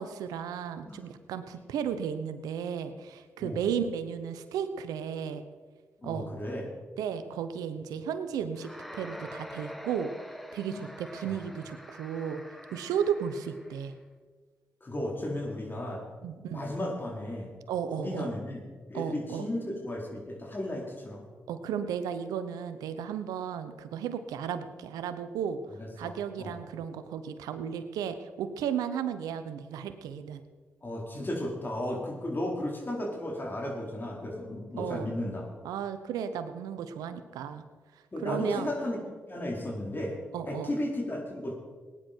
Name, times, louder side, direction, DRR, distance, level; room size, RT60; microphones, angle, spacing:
voice 1, 0.0-5.4 6.0-6.3 7.0-10.1 10.5-12.4 12.7-14.0 16.2-16.6 17.7-18.3 18.9-19.5 21.5-25.6 26.0-30.4 34.8-35.1 35.6-37.6 38.2-38.7 40.3-40.7, right 8 dB, 85° right, 11 dB, 0.9 m, -34 dB
voice 2, 6.0-6.7 10.7-10.9 11.3-11.4 14.8-16.0 16.5-17.5 17.9-21.2 25.8-26.1 26.4-26.6 30.8-35.4 38.1-39.0 39.3-40.2 40.4-41.6, left 1 dB, 35° left, -1 dB, 4.5 m, -34 dB
sound 1, 8.5-13.9, equal, ahead, 1.6 m, -45 dB
18.5 x 9.9 x 4.5 m, 1.5 s
supercardioid pair, 40°, 6 cm